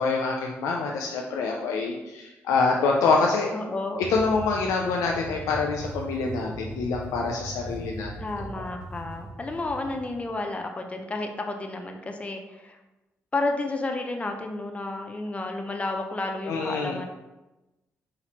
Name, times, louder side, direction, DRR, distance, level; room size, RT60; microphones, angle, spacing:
voice 1, 0.0-3.5 4.1-8.1 16.5-17.0, left 4 dB, 85° left, 0 dB, 0.4 m, -26 dB
voice 2, 3.5-4.1 8.2-12.8 13.3-17.1, left 2 dB, 25° left, 3 dB, 0.6 m, -31 dB
sound 1, 4.0-10.3, right 1 dB, 25° right, 1.6 m, -39 dB
4.3 x 4.0 x 2.9 m, 1.0 s
supercardioid pair, 65°, 5 cm